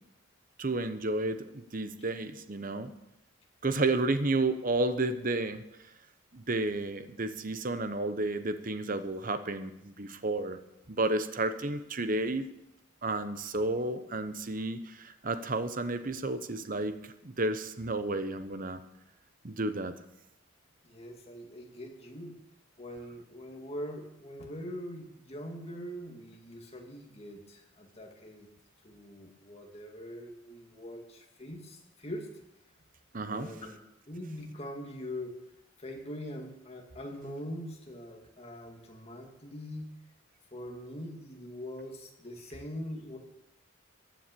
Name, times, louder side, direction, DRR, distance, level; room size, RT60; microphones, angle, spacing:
voice 1, 0.6-2.9 3.6-5.6 6.3-10.6 10.9-12.5 13.0-18.8 19.4-19.9 33.1-33.5, right 2 dB, 40° right, 10 dB, 0.9 m, -31 dB
voice 2, 20.8-22.4 22.8-28.5 28.8-32.3 33.3-33.8 34.1-35.3 35.8-39.9 40.5-43.2, equal, 30° left, 1 dB, 2.3 m, -42 dB
15.0 x 9.2 x 6.9 m, 0.86 s
head